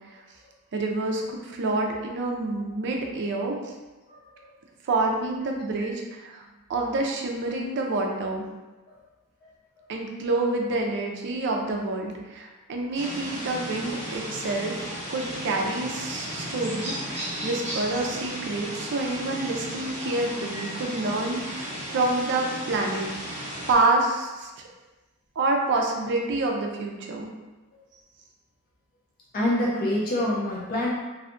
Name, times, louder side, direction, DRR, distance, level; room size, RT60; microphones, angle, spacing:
voice 1, 0.7-3.7 4.8-6.4 6.7-8.4 9.9-23.4 23.7-24.6 25.4-27.3, right 2 dB, 50° right, 1 dB, 0.4 m, -28 dB
voice 2, 4.1-4.5 8.9-9.0 9.4-9.5 9.8-9.9 29.3-30.9, left 1 dB, 40° left, -4 dB, 0.4 m, -27 dB
sound 1, 12.9-23.7, equal, 30° right, 0.9 m, -35 dB
2.6 x 2.2 x 2.5 m, 1.2 s
head